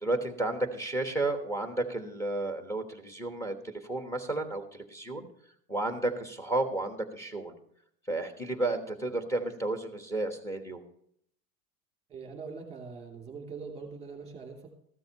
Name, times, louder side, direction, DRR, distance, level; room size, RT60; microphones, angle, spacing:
voice 1, 0.0-5.2 5.7-7.5 8.1-10.8, right 2 dB, 5° left, 6 dB, 1.2 m, -32 dB
voice 2, 12.1-14.7, right 5 dB, 15° right, 2 dB, 2.6 m, -42 dB
14.5 x 13.0 x 2.9 m, 0.67 s
supercardioid pair, 160°, 45 cm